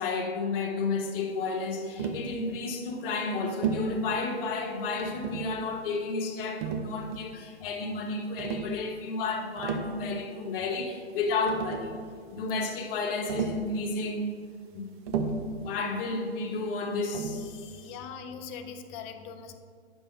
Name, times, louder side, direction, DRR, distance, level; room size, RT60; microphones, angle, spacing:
voice 1, 0.0-12.0 12.3-14.3 14.7-14.9 15.6-18.0, left 3 dB, 55° left, 1.3 m, -32 dB
Tap, 2.0-2.3 3.6-3.9 5.0-5.6 6.6-7.4 8.4-8.7 9.4-10.0 11.1-11.2 11.5-12.0 13.3-13.7 15.1-15.5 17.1-17.5, right 5 dB, 45° right, 0.8 m, -32 dB
voice 2, 17.8-19.6, left 6 dB, 25° left, 0.4 m, -41 dB
8.8 x 6.4 x 3.8 m
hypercardioid pair, 135°, 34 cm